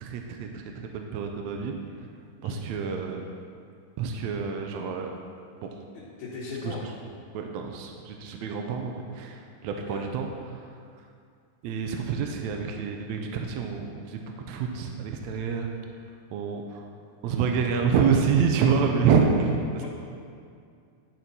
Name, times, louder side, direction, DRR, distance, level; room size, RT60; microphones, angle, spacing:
voice 1, 0.0-0.6 0.9-1.7 2.4-3.2 4.0-5.1 5.6-5.7 6.6-6.7 7.3-10.7 11.6-14.2 14.5-15.7 16.3-16.8 17.2-19.9, right 6 dB, 80° right, 3 dB, 1.7 m, -27 dB
voice 2, 5.9-6.8 9.9-10.1 19.8-19.9, left 4 dB, 80° left, -8 dB, 2.6 m, -38 dB
11.0 x 4.4 x 4.1 m, 2.3 s
omnidirectional pair, 3.6 m